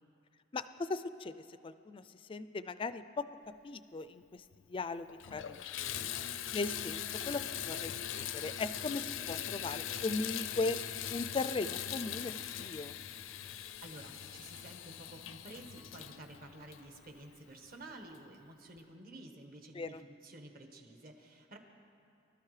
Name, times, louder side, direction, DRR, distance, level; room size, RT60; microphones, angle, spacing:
voice 1, 0.5-1.3 1.6-2.0 2.3-3.2 3.6-4.2 4.7-6.1 6.5-10.8 11.1-12.9 19.7-20.0, left 3 dB, 25° left, 12 dB, 0.4 m, -38 dB
Water tap faucet / Bathtub (filling or washing), 4.5-4.6 5.1-17.5 18.1-18.2 18.8-18.9, left 10 dB, 85° left, 0.5 m, -41 dB
voice 2, 13.8-21.6, right 1 dB, 50° right, 4 dB, 1.3 m, -51 dB
24.5 x 12.5 x 3.2 m, 2.5 s
head